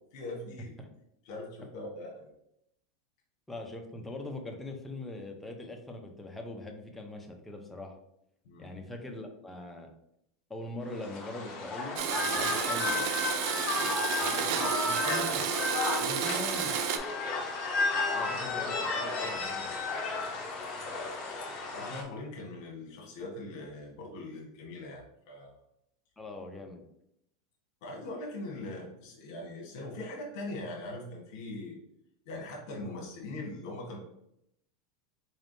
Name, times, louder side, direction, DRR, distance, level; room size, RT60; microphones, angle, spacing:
voice 1, 0.1-0.8 1.2-2.3 8.4-8.8 13.6-14.0 18.2-18.4 21.7-25.6 27.8-31.8 32.2-34.0, left 2 dB, 65° left, -2 dB, 1.2 m, -41 dB
voice 2, 3.5-7.9 8.6-9.9 10.5-13.1 14.2-15.4 16.0-16.8 18.1-19.7 26.2-26.8, left 2 dB, 5° left, 3 dB, 0.6 m, -42 dB
sound 1, 10.9-22.0, left 3 dB, 35° left, 0.9 m, -33 dB
Domestic sounds home sounds, 12.0-17.0, right 8 dB, 55° right, 0.4 m, -31 dB
4.1 x 3.3 x 2.6 m, 0.77 s
supercardioid pair, 135°, 2 cm